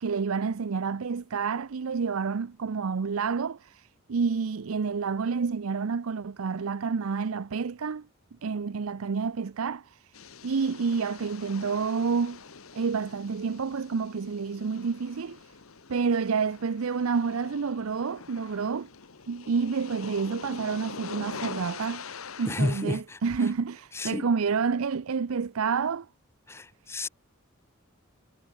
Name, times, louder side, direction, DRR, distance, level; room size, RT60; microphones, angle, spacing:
voice 1, 0.0-8.1 8.4-10.1 10.4-12.4 12.7-15.5 15.9-18.9 19.3-26.1, right 5 dB, 85° right, 0.5 m, -29 dB
sound 1, 10.1-22.8, left 5 dB, 85° left, 1.4 m, -44 dB
voice 2, 22.5-23.2 23.9-24.2 26.5-27.1, left 2 dB, 10° left, 0.4 m, -30 dB
head